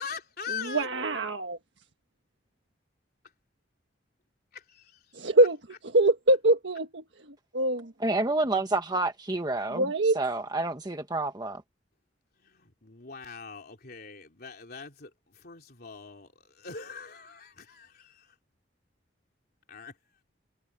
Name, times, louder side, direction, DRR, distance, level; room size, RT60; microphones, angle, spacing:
voice 1, 0.0-0.9 4.5-5.2 12.4-18.4 19.7-19.9, left 5 dB, 55° left, 3.4 m, -42 dB
voice 2, 0.6-1.6 5.1-5.6 5.9-7.9 9.7-10.2, right 1 dB, 75° right, 1.5 m, -24 dB
voice 3, 8.0-9.8 10.1-11.6, right 2 dB, 20° right, 1.3 m, -29 dB
head